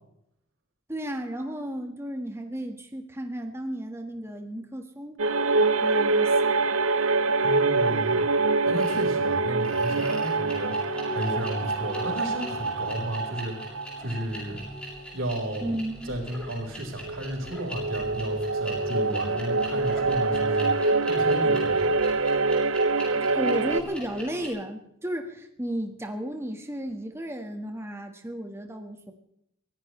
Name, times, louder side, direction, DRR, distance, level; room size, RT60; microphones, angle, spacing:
voice 1, 0.9-5.2 5.8-6.6 15.6-16.1 23.2-29.1, right 1 dB, 10° right, 4 dB, 1.6 m, -34 dB
sound 1, 5.2-14.4 14.7-14.8 17.0-23.8, right 3 dB, 90° right, 0.9 m, -25 dB
voice 2, 7.4-8.3 8.6-10.7 11.1-13.6 14.0-14.6 15.1-15.7 16.0-21.9, right 1 dB, 70° right, 1 dB, 4.9 m, -33 dB
sound 2, 8.8-9.1 9.6-24.5, equal, 5° left, 7.2 m, -40 dB
23.5 x 16.5 x 3.3 m, 0.75 s
head